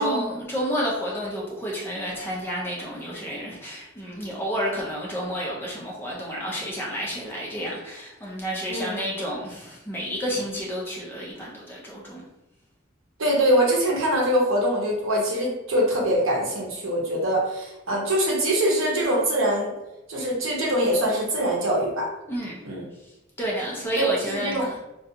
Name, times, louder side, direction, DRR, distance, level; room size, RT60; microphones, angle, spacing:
voice 1, 0.0-12.3 22.3-22.6 23.4-24.7, equal, 10° left, -4 dB, 0.4 m, -30 dB
voice 2, 8.7-9.0 13.2-19.7 20.1-22.1 22.6-22.8 24.0-24.7, right 1 dB, 75° right, -2 dB, 0.8 m, -23 dB
2.4 x 2.2 x 2.7 m, 0.94 s
head